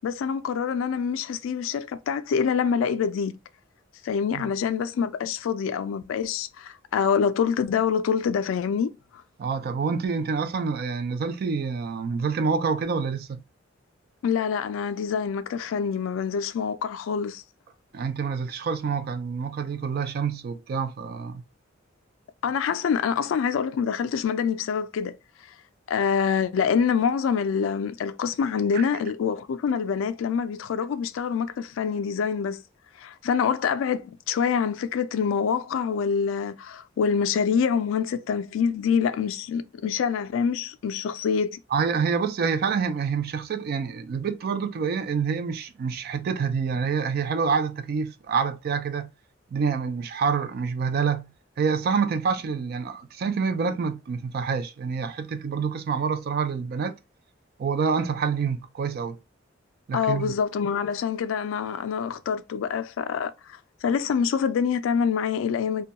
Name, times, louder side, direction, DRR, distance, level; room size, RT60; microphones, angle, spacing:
voice 1, 0.0-3.3 4.0-8.9 14.2-17.4 22.4-25.2 25.9-32.6 33.0-41.6 59.9-65.8, left 6 dB, 80° left, 0.3 m, -26 dB
voice 2, 9.4-13.4 17.9-21.5 28.7-28.8 41.7-49.1 49.5-51.3 51.6-56.9 57.6-59.2 59.9-60.4, right 5 dB, 50° right, 0.3 m, -27 dB
2.2 x 2.2 x 2.7 m
head